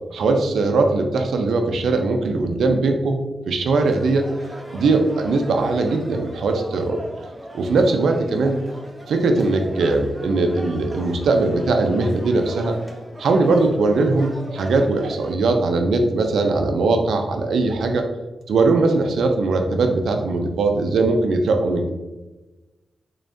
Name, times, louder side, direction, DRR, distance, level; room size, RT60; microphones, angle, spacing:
voice 1, 0.1-3.2 3.5-4.3 4.7-7.0 7.5-8.6 9.1-12.8 13.2-18.1 18.5-21.9, right 3 dB, 85° right, 5 dB, 0.5 m, -20 dB
sound 1, 3.8-15.3, right 1 dB, 10° right, 0.7 m, -39 dB
3.7 x 3.4 x 2.6 m, 1.1 s
cardioid pair, 90°, 0 cm